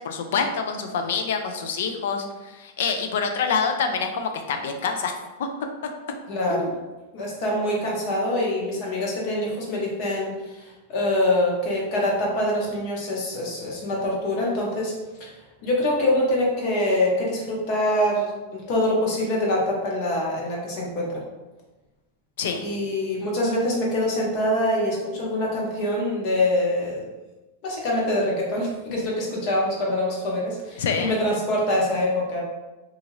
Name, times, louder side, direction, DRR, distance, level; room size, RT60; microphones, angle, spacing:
voice 1, 0.0-5.1 5.4-5.5 6.5-6.7 22.4-22.7 30.8-31.1, left 5 dB, 65° left, 5 dB, 0.4 m, -26 dB
voice 2, 6.3-6.7 7.1-14.9 15.2-15.3 15.6-21.2 22.6-27.1 27.6-32.4, left 1 dB, 40° left, -3 dB, 0.8 m, -24 dB
2.7 x 2.4 x 3.1 m, 1.1 s
supercardioid pair, 170°, 0 cm